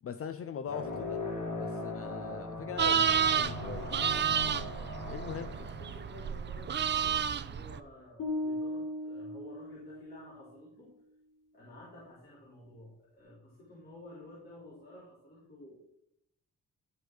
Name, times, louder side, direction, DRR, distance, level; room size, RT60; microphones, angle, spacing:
voice 1, 0.0-1.2 1.6-4.1 4.8-5.5, left 7 dB, 45° left, 0.6 m, -41 dB
sound 1, 0.6-6.8, left 2 dB, 65° left, 3.3 m, -40 dB
sound 2, 2.8-7.8, right 8 dB, 35° right, 0.4 m, -30 dB
voice 2, 5.1-10.9 11.5-16.0, left 1 dB, 30° left, 3.9 m, -52 dB
sound 3, 8.2-10.4, left 1 dB, 80° left, 3.0 m, -37 dB
12.0 x 5.1 x 6.1 m
wide cardioid pair, 160°, 31 cm